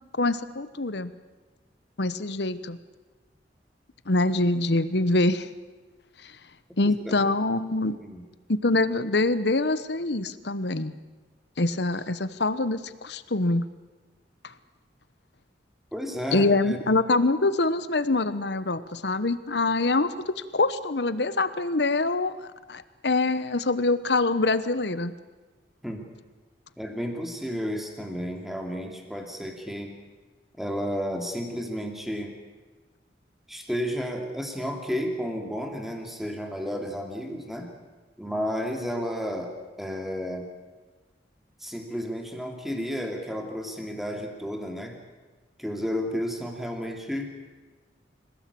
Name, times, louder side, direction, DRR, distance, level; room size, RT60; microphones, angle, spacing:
voice 1, 0.2-1.1 2.0-2.8 4.1-5.5 6.2-6.3 6.8-8.0 8.5-10.9 11.6-13.6 14.4-14.5 16.3-25.1, left 2 dB, 70° left, 14 dB, 1.1 m, -25 dB
voice 2, 6.8-7.2 8.0-8.2 15.9-16.8 25.8-26.1 26.8-30.0 30.6-32.3 33.5-37.7 38.2-39.5 39.8-40.5 41.6-45.0 45.6-47.3, equal, ahead, 2 dB, 2.9 m, -32 dB
27.0 x 17.0 x 8.6 m, 1.3 s
head